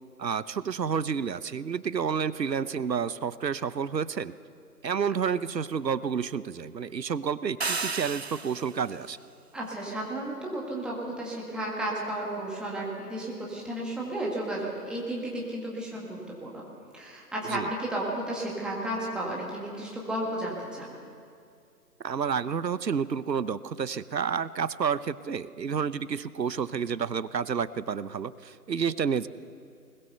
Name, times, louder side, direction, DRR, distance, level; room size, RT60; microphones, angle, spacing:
voice 1, 0.2-4.3 4.8-9.2 17.5-17.7 22.0-29.3, right 6 dB, 80° right, 16 dB, 1.0 m, -30 dB
sound 1, 7.6-8.9, right 4 dB, 45° right, 0.4 m, -32 dB
voice 2, 9.5-16.6 16.9-21.0, right 1 dB, ahead, -4 dB, 1.6 m, -33 dB
21.0 x 20.5 x 6.8 m, 2.3 s
figure-of-eight pair, 150°, 50 cm